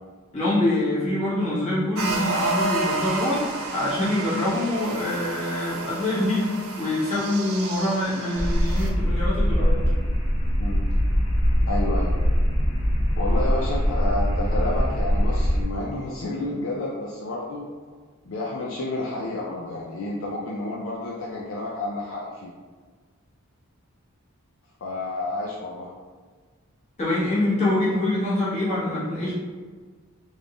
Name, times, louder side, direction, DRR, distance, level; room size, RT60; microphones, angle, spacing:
voice 1, 0.3-3.4 3.7-6.5 6.8-9.8 27.0-29.3, left 1 dB, 30° left, -9 dB, 1.4 m, -25 dB
sound 1, 2.0-8.9, right 3 dB, 75° right, 0.5 m, -31 dB
sound 2, 8.3-15.6, equal, 85° left, 0.8 m, -22 dB
voice 2, 11.7-12.2 13.2-17.7 18.3-22.5 24.8-25.9, left 2 dB, 65° left, -4 dB, 0.5 m, -30 dB
3.6 x 2.5 x 3.0 m, 1.5 s
head